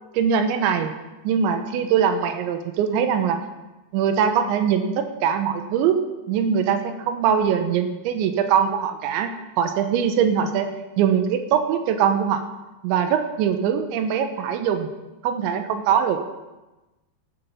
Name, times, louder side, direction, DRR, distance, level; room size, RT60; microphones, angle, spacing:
voice 1, 0.1-0.9 1.2-3.4 3.9-6.0 6.3-12.4 12.8-14.9 15.2-16.2, right 7 dB, 80° right, 7 dB, 3.3 m, -22 dB
13.5 x 8.3 x 7.0 m, 1.1 s
omnidirectional pair, 5.3 m